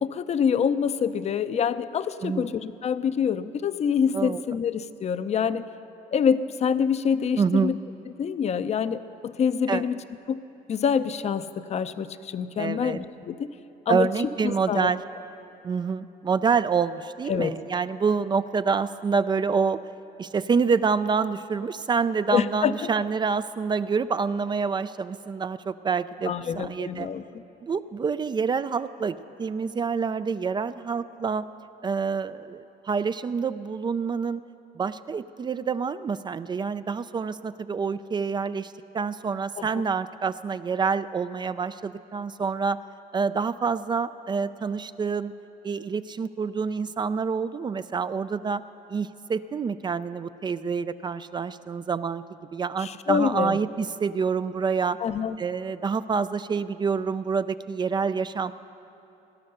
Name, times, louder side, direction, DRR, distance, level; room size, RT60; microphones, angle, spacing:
voice 1, 0.0-5.6 6.1-7.8 8.2-10.0 10.3-10.4 10.7-13.5 13.9-14.1 14.4-14.9 17.3-17.5 22.3-22.9 26.3-27.4 39.6-39.8 52.8-53.6 55.0-55.4, left 7 dB, 40° left, 12 dB, 0.6 m, -26 dB
voice 2, 7.4-7.7 9.7-9.8 12.6-13.0 13.9-15.0 15.6-19.8 20.2-27.1 27.6-31.5 31.8-34.4 34.8-42.8 43.1-45.3 45.6-48.6 48.9-52.2 52.5-55.0 55.4-58.5, right 5 dB, 25° right, 13 dB, 0.4 m, -27 dB
18.5 x 11.0 x 6.6 m, 2.9 s
cardioid pair, 110°, 17 cm